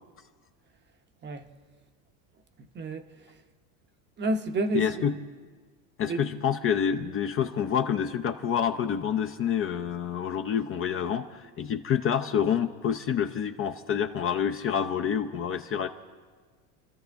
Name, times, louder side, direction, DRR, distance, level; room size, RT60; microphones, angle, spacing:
voice 1, 2.7-3.4 4.2-5.1 6.1-6.3, right 2 dB, 25° right, 0.8 m, -30 dB
voice 2, 4.7-5.2 6.0-15.9, left 8 dB, 30° left, 0.6 m, -27 dB
29.0 x 13.5 x 3.5 m
supercardioid pair, 130°, 48 cm